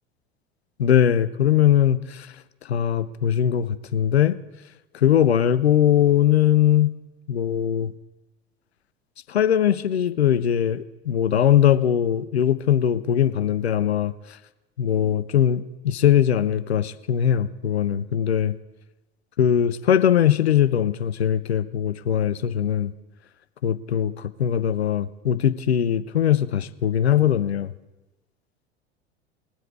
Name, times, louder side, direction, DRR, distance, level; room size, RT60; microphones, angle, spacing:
voice 1, 0.8-2.3 2.7-4.4 4.9-7.0 7.3-7.9 9.3-14.1 14.8-18.5 19.4-22.9 23.6-27.7, left 10 dB, 75° left, 14 dB, 0.7 m, -21 dB
21.5 x 7.8 x 4.7 m, 1.1 s
figure-of-eight pair, 80°, 32 cm